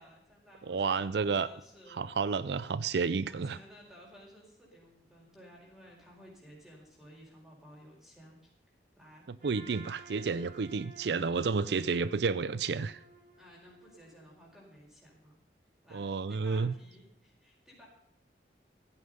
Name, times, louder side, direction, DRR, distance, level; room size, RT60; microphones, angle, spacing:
voice 1, 0.0-2.0 2.5-2.7 3.2-8.4 9.0-9.3 13.4-15.4 15.8-17.9, equal, 5° right, -3 dB, 4.8 m, -55 dB
voice 2, 0.7-1.5 1.9-3.6 9.3-13.0 15.9-16.7, right 5 dB, 70° right, 16 dB, 0.5 m, -31 dB
Trumpet, 9.4-14.5, right 3 dB, 45° right, 4.9 m, -54 dB
15.0 x 9.8 x 5.5 m, 0.76 s
head